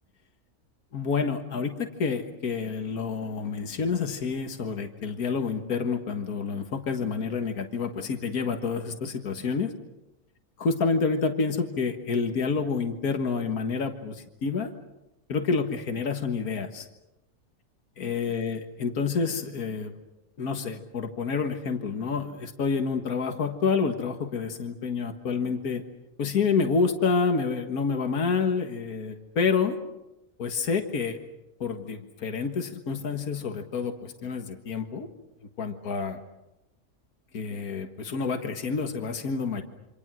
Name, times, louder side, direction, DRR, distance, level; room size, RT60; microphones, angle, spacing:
voice 1, 0.9-9.7 10.6-14.7 15.3-16.9 18.0-19.9 20.4-25.8 26.2-29.8 30.4-31.2 31.6-35.1 35.6-36.2 37.3-39.6, left 5 dB, 80° left, 6 dB, 2.1 m, -28 dB
28.0 x 26.0 x 6.2 m, 0.94 s
omnidirectional pair, 1.5 m